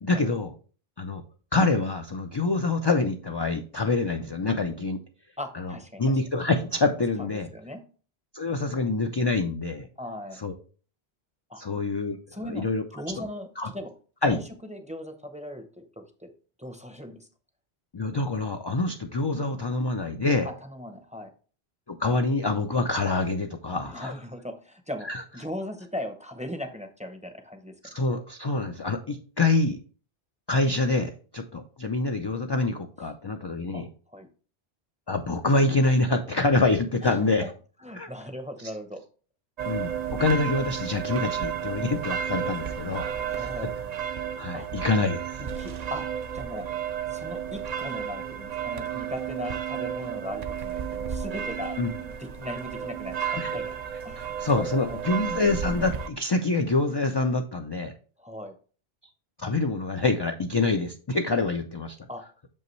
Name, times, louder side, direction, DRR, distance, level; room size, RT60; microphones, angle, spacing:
voice 1, 0.0-0.5 1.0-1.2 1.5-5.0 5.5-7.5 8.3-9.9 10.4-10.5 11.6-12.2 12.5-12.8 13.2-13.3 13.6-13.7 14.2-14.4 17.9-20.5 21.9-24.2 25.0-25.2 27.9-29.8 30.5-33.9 35.1-37.4 37.9-38.1 39.7-43.1 43.3-43.5 44.4-45.4 51.8-51.9 53.3-53.5 54.4-57.9 59.4-62.0, left 3 dB, 40° left, 4 dB, 0.4 m, -26 dB
voice 2, 5.4-6.1 7.2-7.8 10.0-10.4 11.5-11.6 12.3-12.7 12.9-13.5 13.7-13.9 14.2-16.3 16.6-17.3 20.4-21.3 23.9-25.1 25.3-27.7 33.7-33.8 34.1-34.3 37.0-37.2 37.8-39.0 43.2-43.7 44.5-44.7 45.4-46.0 46.3-46.7 47.1-53.8 54.0-55.2 58.2-58.5 62.1-62.2, left 1 dB, 10° right, 6 dB, 0.6 m, -38 dB
sound 1, 39.6-56.1, right 8 dB, 50° right, 0.6 m, -32 dB
6.8 x 5.4 x 3.1 m, 0.39 s
omnidirectional pair, 1.1 m